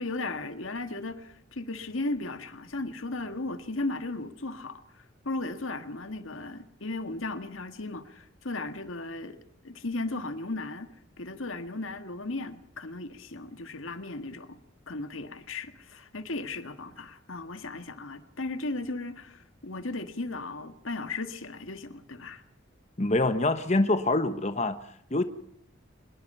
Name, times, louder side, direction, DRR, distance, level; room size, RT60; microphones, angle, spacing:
voice 1, 0.0-9.4 9.6-10.9 11.2-14.6 14.9-22.4, left 2 dB, 80° left, 1.8 m, -36 dB
voice 2, 23.0-24.8 25.1-25.2, left 2 dB, 35° left, 1.1 m, -25 dB
24.5 x 21.5 x 5.6 m
head